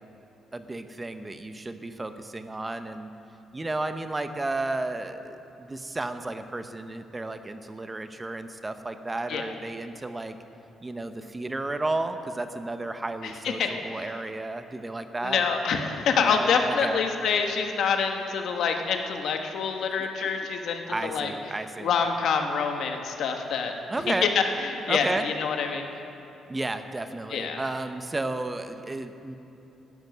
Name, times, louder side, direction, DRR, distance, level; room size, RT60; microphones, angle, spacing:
voice 1, 0.5-3.1 3.5-10.4 10.8-15.4 16.2-17.0 20.0-20.5 20.9-21.9 23.9-24.3 24.9-25.2 26.5-29.4, right 2 dB, 20° right, 9 dB, 0.8 m, -33 dB
voice 2, 15.2-21.3 21.8-23.7 24.1-24.4 24.7-25.8 27.3-27.6, left 6 dB, 75° left, 4 dB, 1.2 m, -26 dB
12.0 x 7.8 x 9.3 m, 2.9 s
cardioid pair, 90°, 0 cm